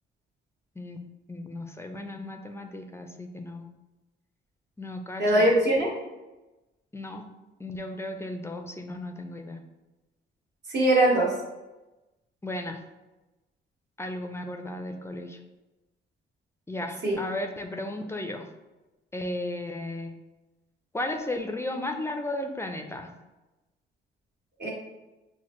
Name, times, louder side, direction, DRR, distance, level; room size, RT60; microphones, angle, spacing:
voice 1, 1.3-3.7 4.8-5.5 6.9-7.2 7.6-9.6 12.4-12.8 14.0-15.4 16.7-18.5 19.1-20.1 20.9-23.1, left 1 dB, 15° left, 4 dB, 0.4 m, -35 dB
voice 2, 5.2-5.9 10.7-11.3 17.0-17.2 24.6-24.7, right 1 dB, 60° right, -4 dB, 1.5 m, -21 dB
5.7 x 2.1 x 3.1 m, 1.1 s
cardioid pair, 90°, 20 cm